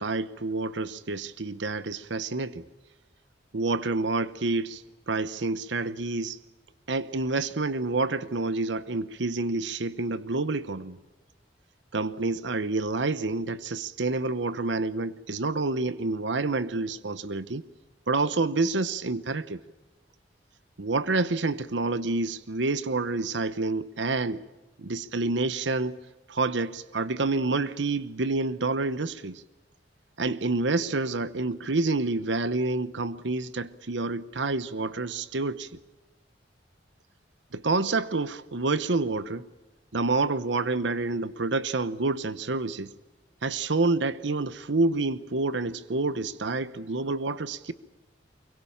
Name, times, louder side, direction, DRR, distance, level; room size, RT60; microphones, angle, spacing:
voice 1, 0.0-2.6 3.5-6.4 6.9-11.0 11.9-17.6 18.1-19.6 20.8-24.4 24.8-26.0 26.3-29.4 30.2-35.7 37.5-39.5 39.9-42.9 43.4-47.7, right 3 dB, 85° right, 1.0 m, -28 dB
24.0 x 23.0 x 8.7 m
head